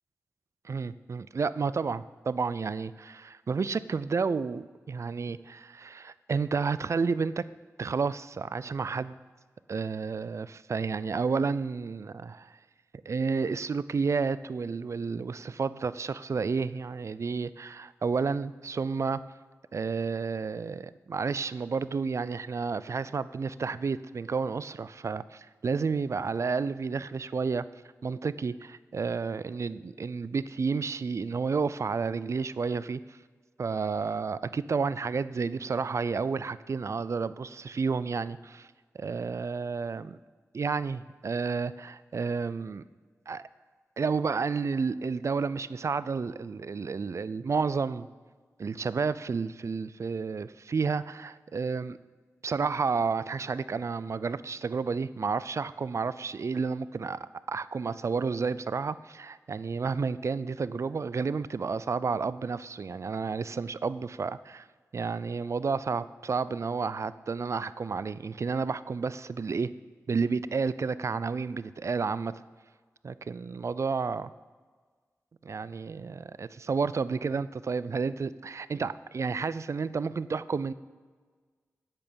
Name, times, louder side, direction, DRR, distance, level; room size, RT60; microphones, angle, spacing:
voice 1, 0.6-7.4 7.8-9.1 9.7-12.5 13.1-19.2 19.7-27.7 28.0-33.0 33.6-38.7 38.9-40.2 40.5-42.8 43.3-43.4 44.0-48.1 48.6-52.0 52.4-64.6 64.9-69.7 70.1-72.4 73.0-74.3 75.4-80.7, right 5 dB, 55° right, 17 dB, 0.4 m, -31 dB
8.7 x 8.3 x 7.0 m, 1.5 s
cardioid pair, 60°, 6 cm